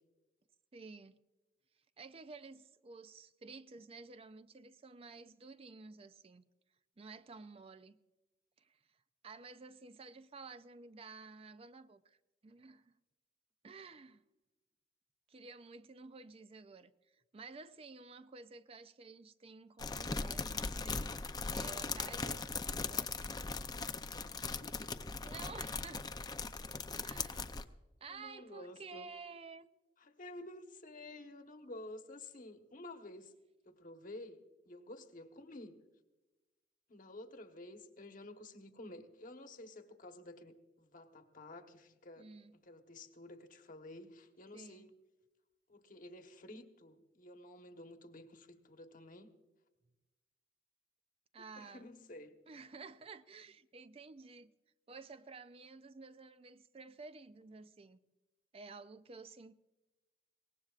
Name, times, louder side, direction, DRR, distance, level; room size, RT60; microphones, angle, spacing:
voice 1, 0.7-1.2 2.0-6.4 7.0-8.0 8.6-8.8 9.2-12.2 12.4-13.0 13.6-14.2 15.3-21.1 21.5-22.5 22.7-23.3 25.2-26.1 27.0-27.6 28.0-29.7 42.2-42.6 44.5-44.9 51.3-51.9 52.5-54.5 54.9-58.0 58.5-59.5, right 4 dB, 35° right, 0.4 m, -52 dB
sound 1, 19.8-27.6, left 4 dB, 20° left, 0.5 m, -39 dB
voice 2, 24.1-24.8 28.1-29.1 30.0-33.3 33.7-35.8 36.9-42.3 42.6-44.9 45.7-49.3 51.6-52.3, left 1 dB, 50° left, 1.2 m, -51 dB
23.0 x 18.5 x 2.4 m
head